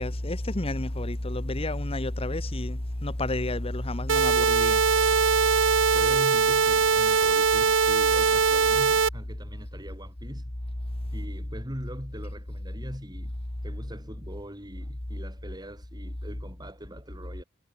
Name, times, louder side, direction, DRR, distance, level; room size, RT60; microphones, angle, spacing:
voice 1, 0.0-4.8, left 1 dB, 30° left, 1.5 m, -30 dB
sound 1, 4.1-9.1, right 5 dB, 75° right, 1.0 m, -21 dB
voice 2, 5.9-10.4 11.1-13.4 13.6-17.4, equal, 20° right, 7.9 m, -41 dB
head